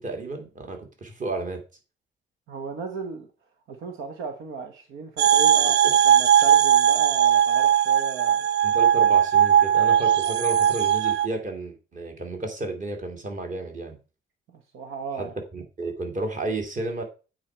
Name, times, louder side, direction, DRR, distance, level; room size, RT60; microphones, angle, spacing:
voice 1, 0.0-1.6 5.6-5.7 8.6-14.0 15.2-17.0, right 2 dB, 40° right, 2.3 m, -32 dB
voice 2, 2.5-3.3 3.7-8.5 14.7-15.3, right 4 dB, 85° right, 1.2 m, -35 dB
sound 1, 5.2-11.3, right 9 dB, 60° right, 0.4 m, -19 dB
8.5 x 4.6 x 4.4 m
cardioid pair, 90°, 20 cm